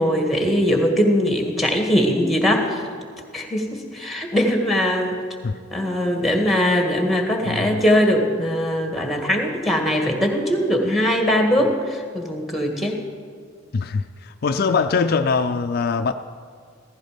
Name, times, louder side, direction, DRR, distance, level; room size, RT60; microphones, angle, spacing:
voice 1, 0.0-2.8 3.3-5.2 5.7-13.0, equal, ahead, 3 dB, 1.9 m, -21 dB
voice 2, 7.4-7.8 13.7-16.1, left 5 dB, 50° left, 7 dB, 0.4 m, -22 dB
15.5 x 15.0 x 5.1 m, 2.1 s
head